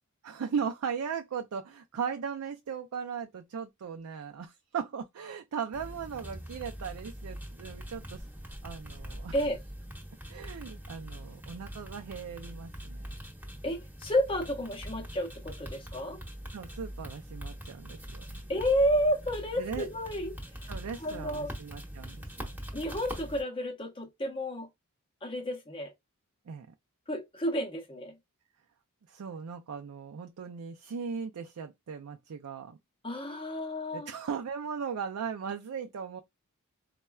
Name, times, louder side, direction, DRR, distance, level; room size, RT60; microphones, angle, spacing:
voice 1, 0.2-9.3 10.3-13.1 16.5-18.4 19.6-19.9 20.7-22.5 26.5-26.7 29.1-32.8 33.9-36.2, right 6 dB, 75° right, 0.4 m, -38 dB
sound 1, 5.7-23.4, equal, 10° right, 0.9 m, -43 dB
voice 2, 13.6-16.2 18.5-20.3 21.0-21.5 22.7-24.7 25.2-25.9 27.1-28.1 33.0-34.1, equal, 25° left, 0.7 m, -31 dB
4.2 x 2.2 x 2.3 m
head